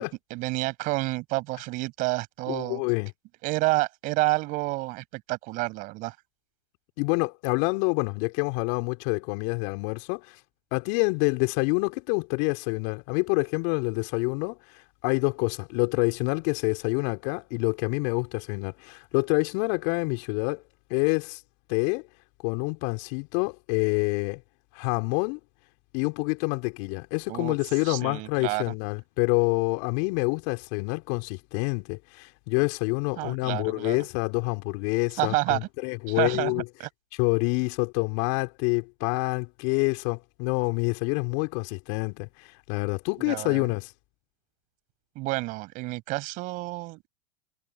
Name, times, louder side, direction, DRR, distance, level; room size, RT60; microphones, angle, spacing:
voice 1, 0.3-2.8 3.4-6.1 27.3-27.5 27.8-28.6 33.2-34.0 35.2-35.6 36.1-36.5 36.8-36.9 43.2-43.7 45.2-47.1, right 22 dB, 50° right, 7.5 m, -29 dB
voice 2, 2.5-3.1 7.0-10.4 10.7-20.6 20.9-21.4 21.7-22.0 22.4-24.4 24.7-25.4 25.9-36.6 37.2-43.9, left 34 dB, 55° left, 4.4 m, -27 dB
hypercardioid pair, 95°, 17 cm